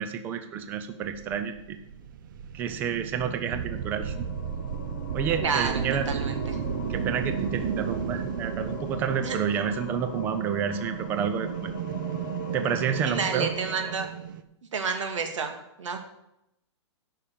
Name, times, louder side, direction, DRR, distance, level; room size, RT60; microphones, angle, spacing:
voice 1, 0.0-1.8 2.5-4.3 5.1-6.1 6.9-11.7 12.5-13.5, right 7 dB, 10° right, 9 dB, 0.5 m, -29 dB
sound 1, 1.0-14.4, right 7 dB, 45° right, 0.7 m, -34 dB
sound 2, 3.3-14.0, left 10 dB, 30° left, 0.7 m, -43 dB
voice 2, 5.4-6.6 9.2-9.4 12.9-14.1 14.7-16.0, right 5 dB, 85° right, 5 dB, 2.2 m, -30 dB
12.0 x 5.8 x 6.8 m, 0.84 s
hypercardioid pair, 170°, 15 cm